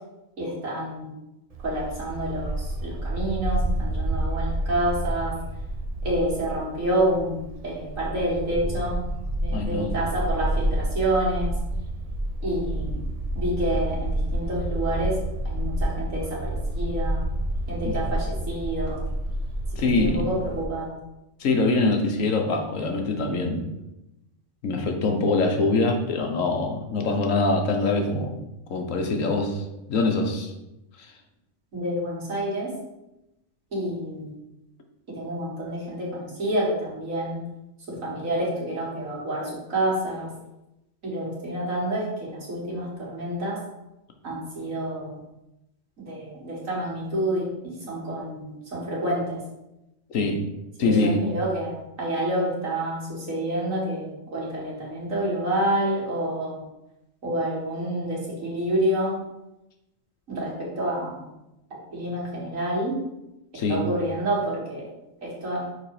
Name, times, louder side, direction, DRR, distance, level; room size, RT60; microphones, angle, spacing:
voice 1, 0.4-1.1 1.6-5.4 6.0-9.0 9.4-11.6 12.4-13.0 13.3-15.2 15.4-17.2 17.7-19.0 20.0-20.9 31.7-32.7 33.7-34.3 35.1-37.4 37.9-40.3 41.0-43.6 44.2-45.1 46.1-47.5 47.9-49.4 50.8-56.6 57.2-59.2 60.3-61.2 61.9-63.0 63.5-64.9 65.2-65.7, right 1 dB, 90° right, -5 dB, 2.5 m, -28 dB
Bark, 1.5-20.6, right 1 dB, 40° right, 0.6 m, -29 dB
voice 2, 9.5-9.9 17.8-18.0 19.8-20.3 21.4-23.7 24.6-28.4 28.7-30.5 31.0-31.1 50.1-50.5 50.8-51.3 63.5-63.9, left 3 dB, 80° left, 3 dB, 1.4 m, -24 dB
6.4 x 4.2 x 4.9 m, 0.92 s
omnidirectional pair, 1.3 m